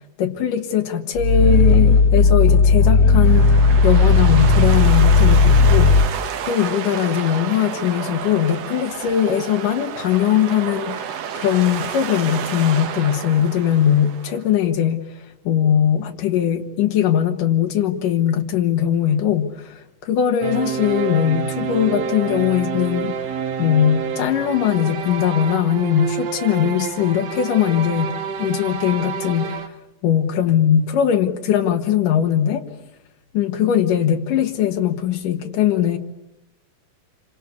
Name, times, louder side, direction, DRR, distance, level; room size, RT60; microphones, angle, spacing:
voice 1, 0.2-29.7 30.0-32.6 33.3-36.0, left 9 dB, 90° left, 5 dB, 3.1 m, -20 dB
Growling, 1.2-6.1, left 4 dB, 50° left, 2.1 m, -14 dB
sound 1, 3.2-14.4, right 8 dB, 60° right, 2.2 m, -30 dB
sound 2, 20.4-29.7, right 6 dB, 80° right, 3.2 m, -28 dB
27.5 x 25.5 x 8.4 m, 0.91 s
omnidirectional pair, 3.7 m